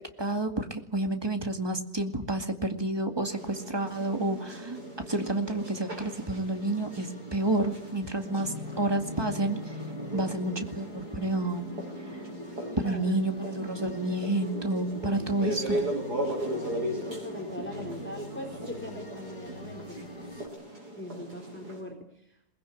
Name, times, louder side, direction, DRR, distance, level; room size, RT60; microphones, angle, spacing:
voice 1, 0.2-9.8 10.1-11.7 12.8-15.8, right 2 dB, 15° right, 6 dB, 2.1 m, -30 dB
sound 1, 2.0-20.5, left 2 dB, 70° left, 4.3 m, -46 dB
sound 2, 3.2-21.8, right 1 dB, 85° right, 7.2 m, -38 dB
voice 2, 12.7-13.6 16.2-20.1 21.0-22.4, left 1 dB, 5° left, 3 dB, 3.7 m, -42 dB
22.0 x 20.5 x 9.9 m, 0.75 s
omnidirectional pair, 1.7 m